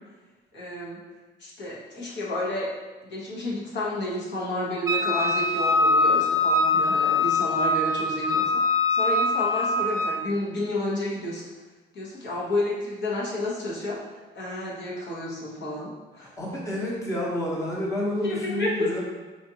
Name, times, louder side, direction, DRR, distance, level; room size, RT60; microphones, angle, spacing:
voice 1, 0.5-1.0 1.4-2.7 3.0-11.4 11.9-14.0 14.3-16.4 18.2-19.0, left 1 dB, 65° left, -5 dB, 1.1 m, -31 dB
Wind instrument woodwind instrument, 4.9-10.2, left 3 dB, 15° right, 0.4 m, -23 dB
voice 2, 16.2-19.0, left 1 dB, 15° left, -4 dB, 0.9 m, -29 dB
4.3 x 2.4 x 2.8 m, 1.3 s
cardioid pair, 90°, 20 cm